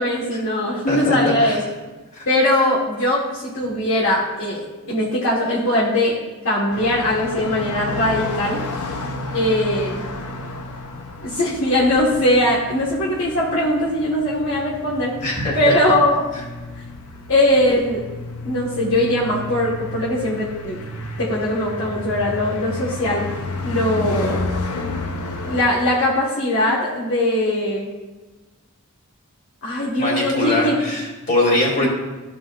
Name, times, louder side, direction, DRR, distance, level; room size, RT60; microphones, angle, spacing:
voice 1, 0.0-1.6 2.2-6.2 6.4-8.6 9.3-10.1 11.2-15.1 15.5-16.2 17.3-18.0 18.4-20.8 21.2-23.3 23.6-24.4 25.4-27.9 29.6-30.7 31.8-31.9, left 1 dB, 65° left, -6 dB, 1.6 m, -20 dB
voice 2, 0.9-1.6 2.1-2.3 15.2-15.6 30.0-31.9, left 1 dB, 35° left, -4 dB, 2.8 m, -22 dB
sound 1, 6.7-25.6, left 2 dB, 80° left, 0.8 m, -31 dB
14.0 x 5.2 x 2.5 m, 1.2 s
head